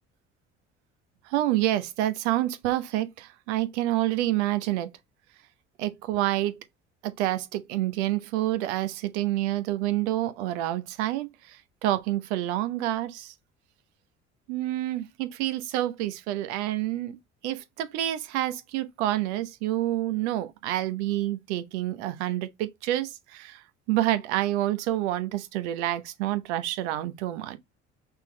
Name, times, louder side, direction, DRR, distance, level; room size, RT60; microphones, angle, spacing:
voice 1, 1.2-4.9 5.8-6.6 7.0-13.3 14.5-17.2 17.4-27.6, right 14 dB, 70° right, 1.0 m, -28 dB
5.8 x 3.7 x 2.2 m
hypercardioid pair, 55°, 35 cm